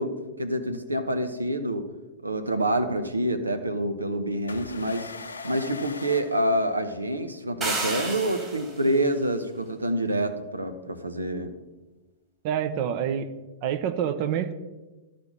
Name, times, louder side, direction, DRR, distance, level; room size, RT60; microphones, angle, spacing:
voice 1, 0.0-1.9 2.2-5.1 5.4-11.5, right 1 dB, 85° right, 8 dB, 0.9 m, -27 dB
sound 1, 4.5-7.3, left 4 dB, 80° left, 0.7 m, -40 dB
sound 2, 7.6-8.9, right 2 dB, 25° right, 2.6 m, -31 dB
voice 2, 12.4-13.3 13.6-14.5, right 9 dB, 45° right, 10 dB, 0.8 m, -27 dB
12.0 x 4.2 x 6.1 m, 1.1 s
figure-of-eight pair, 100°, 0 cm